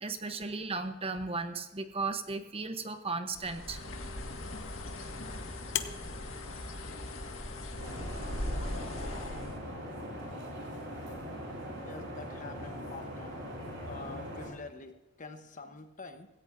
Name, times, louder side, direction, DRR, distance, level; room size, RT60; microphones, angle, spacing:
voice 1, 0.0-3.8, right 3 dB, 30° right, 8 dB, 0.9 m, -35 dB
Bird, 3.3-9.6, left 1 dB, 90° left, 1.8 m, -39 dB
sound 1, 3.4-8.4, left 10 dB, 60° left, 0.8 m, -44 dB
sound 2, 7.8-14.5, equal, 65° right, 5.5 m, -41 dB
voice 2, 11.8-13.4 13.9-16.3, left 3 dB, 40° left, 7 dB, 1.1 m, -46 dB
16.5 x 16.0 x 2.7 m, 1.0 s
head